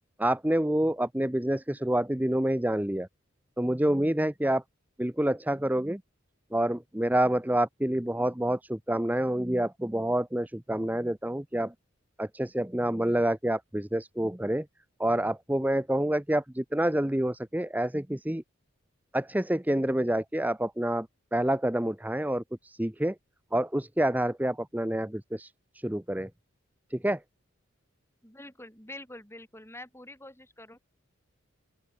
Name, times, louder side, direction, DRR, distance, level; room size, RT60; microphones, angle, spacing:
voice 1, 0.2-3.1 3.6-4.6 5.0-6.0 6.5-11.7 12.2-14.7 15.0-18.4 19.1-23.2 23.5-26.3 26.9-27.2, right 1 dB, 10° right, 0.7 m, -28 dB
voice 2, 28.2-30.8, left 1 dB, 10° left, 7.1 m, -46 dB
open air
head